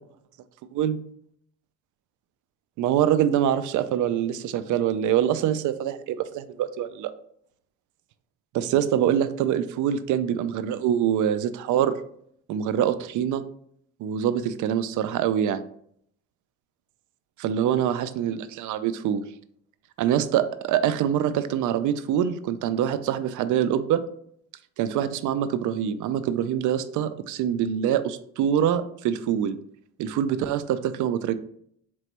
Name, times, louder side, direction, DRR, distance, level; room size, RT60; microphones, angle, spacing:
voice 1, 2.8-7.1 8.5-11.9 12.5-13.5 14.0-15.6 17.4-19.3 20.0-24.0 24.8-29.6 30.0-31.3, right 9 dB, 80° right, 13 dB, 0.4 m, -24 dB
4.3 x 3.1 x 2.9 m, 0.67 s
cardioid pair, 90°, 30 cm